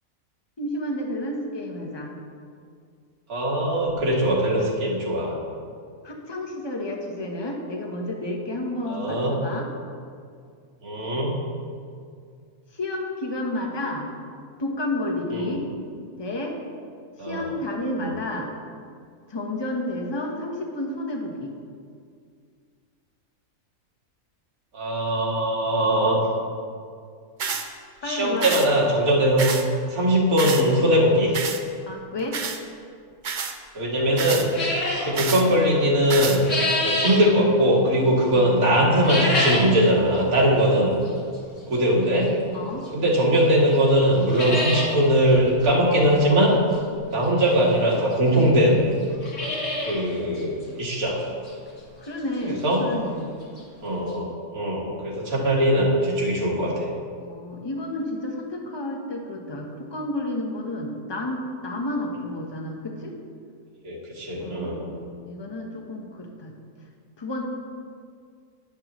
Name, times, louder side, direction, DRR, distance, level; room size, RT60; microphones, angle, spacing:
voice 1, 0.6-2.2 6.0-9.7 12.7-14.1 14.6-15.7 16.0-16.6 17.2-18.5 19.3-21.5 28.0-28.5 31.9-32.4 38.3-38.5 42.5-42.9 52.0-53.3 57.2-63.1 64.4-66.5 67.2-67.4, left 1 dB, 20° left, 1 dB, 0.9 m, -31 dB
voice 2, 3.3-5.4 8.9-9.4 10.8-11.3 15.3-15.5 17.2-17.5 18.0-18.1 24.7-26.2 28.0-29.5 29.9-31.3 33.7-34.5 35.0-36.4 36.8-41.0 41.7-42.3 42.9-46.6 47.1-48.9 49.8-51.3 52.4-52.8 53.8-56.9 63.8-64.8, equal, 80° right, -4 dB, 2.3 m, -21 dB
sound 1, 27.4-27.7 28.4-28.7 29.4-29.7 30.4-30.6 31.3-31.6 32.3-32.6 33.2-33.5 34.2-34.5 35.2-35.4 36.1-36.4, right 6 dB, 55° right, 0.5 m, -28 dB
sound 2, 34.5-35.1 36.1-37.2 38.9-39.7 40.1-40.2 41.1-41.2 42.8-42.9 43.4-43.5 43.7-43.8 44.1-44.9 45.3-45.4 45.6-45.7 47.2-47.3 48.1-48.2 48.4-48.5 49.0-50.0 50.4-50.5 51.0-51.1 51.5-51.6 53.3-53.4 53.6-53.7 54.1-54.2, left 1 dB, 55° left, 2.3 m, -26 dB
10.5 x 10.0 x 3.0 m, 2.2 s
omnidirectional pair, 1.5 m